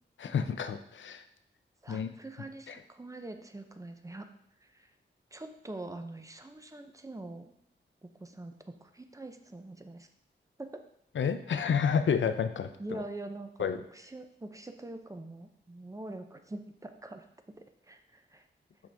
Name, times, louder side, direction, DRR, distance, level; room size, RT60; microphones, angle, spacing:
voice 1, 0.2-1.2 1.9-2.1 2.7-2.8 11.1-13.0 13.6-13.8, left 7 dB, 75° left, 9 dB, 0.5 m, -30 dB
voice 2, 1.8-4.3 4.6-4.9 5.3-7.5 8.0-10.1 10.6-10.8 12.8-13.5 13.9-18.4, right 2 dB, 15° right, 7 dB, 0.6 m, -44 dB
6.2 x 5.0 x 3.5 m, 0.73 s
cardioid pair, 65°, 20 cm